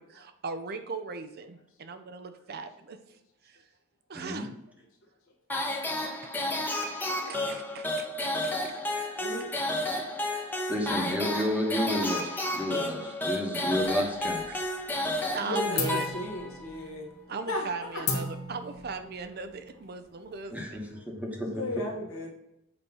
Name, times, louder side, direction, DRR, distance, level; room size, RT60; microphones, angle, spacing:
voice 1, 0.0-3.0 3.4-3.6 4.1-4.5 6.3-6.9 7.2-9.1 13.9-14.0 14.5-14.6 15.3-16.1 16.8-16.9 17.3-20.8, right 4 dB, 45° right, 9 dB, 0.6 m, -39 dB
voice 2, 4.1-4.5 10.7-14.6 20.5-21.6, left 1 dB, 5° right, 1 dB, 1.1 m, -31 dB
sound 1, 5.5-16.6, left 1 dB, 10° left, 0.8 m, -32 dB
sound 2, 13.9-14.7 15.0-15.4 15.7-20.9, left 3 dB, 50° left, 1.4 m, -37 dB
voice 3, 15.4-17.1 17.5-17.7 17.9-18.0 20.9-21.0 21.5-22.3, left 1 dB, 70° left, 1 dB, 1.7 m, -35 dB
7.8 x 3.1 x 5.5 m, 0.82 s
head